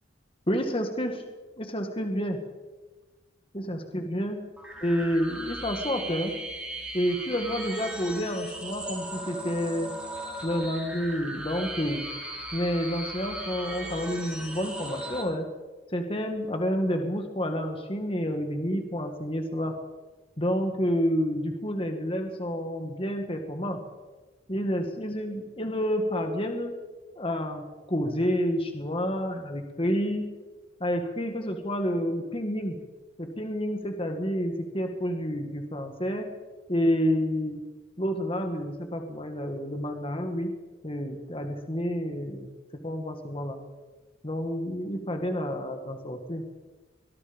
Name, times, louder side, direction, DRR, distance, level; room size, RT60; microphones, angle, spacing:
voice 1, 0.5-1.2 1.6-2.4 3.5-4.5 4.8-6.3 6.9-9.9 10.4-12.1 12.5-15.5 15.9-19.7 20.4-23.8 24.5-26.7 27.2-30.3 30.8-32.8 33.2-36.3 36.7-37.6 38.0-40.5 40.8-42.5 42.7-43.6 44.2-46.5, equal, 30° left, 5 dB, 2.0 m, -29 dB
sound 1, 4.6-15.2, right 1 dB, 5° right, 4.4 m, -37 dB
24.0 x 21.0 x 5.4 m, 1.3 s
head